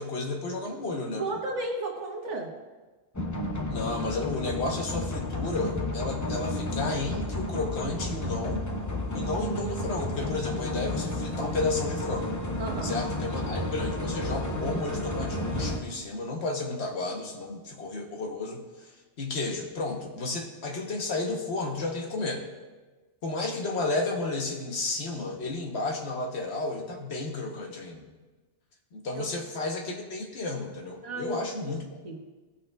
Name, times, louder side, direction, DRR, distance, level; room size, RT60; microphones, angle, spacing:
voice 1, 0.0-1.4 3.7-8.7 9.1-12.4 12.8-22.4 23.2-28.1 28.9-32.0, left 3 dB, 65° left, 2 dB, 1.2 m, -32 dB
voice 2, 1.1-2.5 12.6-13.0 29.1-29.3 31.0-31.8 32.0-32.2, right 2 dB, 90° right, 0 dB, 1.6 m, -34 dB
sound 1, 3.1-15.8, left 1 dB, 20° left, 0.6 m, -32 dB
17.0 x 5.6 x 2.3 m, 1.3 s
omnidirectional pair, 1.2 m